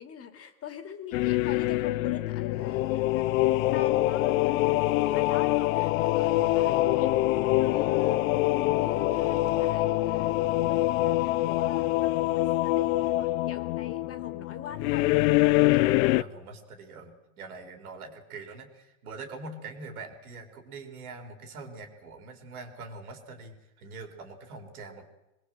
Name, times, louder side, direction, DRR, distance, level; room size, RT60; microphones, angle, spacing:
voice 1, 0.0-15.1, left 8 dB, 35° left, 9 dB, 2.6 m, -42 dB
sound 1, 1.1-16.2, left 17 dB, 70° left, 0.8 m, -25 dB
voice 2, 6.2-6.6 15.8-25.1, right 3 dB, 85° right, 5 dB, 4.4 m, -44 dB
23.5 x 20.5 x 7.9 m, 0.95 s
supercardioid pair, 115°, 43 cm